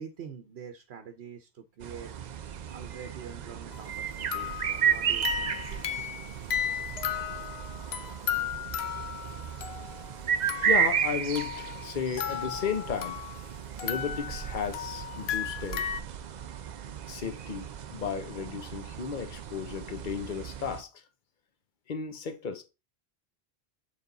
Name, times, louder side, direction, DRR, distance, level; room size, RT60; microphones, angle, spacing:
voice 1, 0.0-2.1 2.7-6.2, right 7 dB, 75° right, 1.0 m, -45 dB
sound 1, 1.8-20.8, right 8 dB, 55° right, 0.6 m, -34 dB
sound 2, 3.7-3.9 4.3-10.1 10.5-10.9 11.4-13.5 13.8-16.0, left 9 dB, 75° left, 0.9 m, -35 dB
voice 2, 10.6-13.2 13.8-15.8 17.1-20.9 21.9-22.6, left 6 dB, 50° left, 1.0 m, -34 dB
6.9 x 3.5 x 3.9 m
omnidirectional pair, 1.1 m